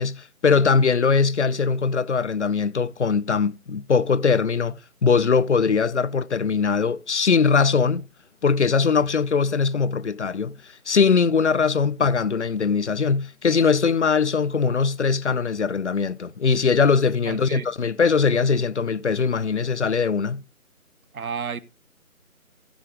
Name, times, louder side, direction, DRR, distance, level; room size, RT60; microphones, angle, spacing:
voice 1, 0.0-8.1 8.4-20.4, left 5 dB, 55° left, 0.5 m, -21 dB
voice 2, 17.3-17.7 21.1-21.6, right 6 dB, 75° right, 0.9 m, -31 dB
15.0 x 6.4 x 3.6 m
figure-of-eight pair, 160°, 43 cm